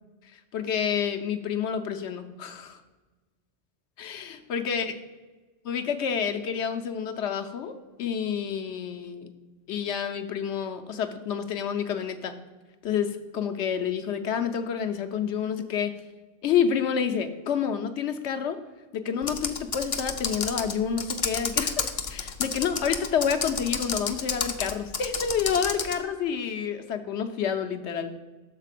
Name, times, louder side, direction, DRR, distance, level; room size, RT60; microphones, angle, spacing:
voice 1, 0.5-2.8 4.0-4.9 5.6-7.7 8.0-9.3 9.7-12.3 12.8-15.9 16.4-18.6 18.9-28.2, left 7 dB, 80° left, 6 dB, 1.0 m, -29 dB
Computer keyboard, 19.2-26.0, left 5 dB, 45° left, 0.4 m, -31 dB
6.7 x 4.1 x 6.5 m, 1.2 s
omnidirectional pair, 1.2 m